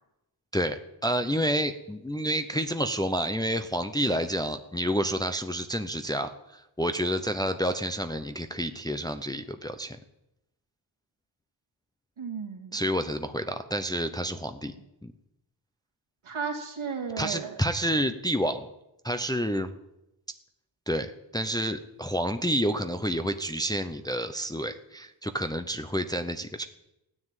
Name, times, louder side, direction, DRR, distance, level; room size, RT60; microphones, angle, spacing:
voice 1, 0.5-10.0 12.7-14.7 15.0-15.1 17.2-18.7 19.0-19.7 20.9-26.6, equal, 10° left, 7 dB, 0.7 m, -29 dB
voice 2, 12.2-12.9 16.2-17.6, right 5 dB, 80° right, 0 dB, 2.7 m, -34 dB
16.0 x 9.8 x 9.0 m, 0.90 s
wide cardioid pair, 160°, 47 cm